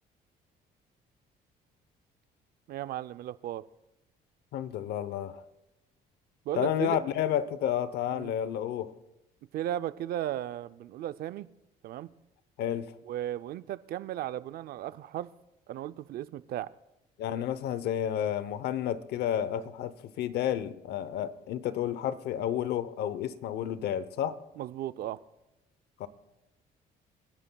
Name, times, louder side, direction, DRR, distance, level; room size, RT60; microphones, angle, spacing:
voice 1, 2.7-3.6 6.5-7.0 8.1-8.3 9.5-11.5 11.8-12.1 13.1-15.3 15.7-16.7 24.6-25.2, right 12 dB, 65° right, 14 dB, 0.5 m, -35 dB
voice 2, 4.5-5.4 6.5-8.9 12.6-12.9 17.2-24.4 26.0-26.1, left 10 dB, 75° left, 15 dB, 0.8 m, -31 dB
28.5 x 11.0 x 2.3 m, 0.93 s
cardioid pair, 110°, 17 cm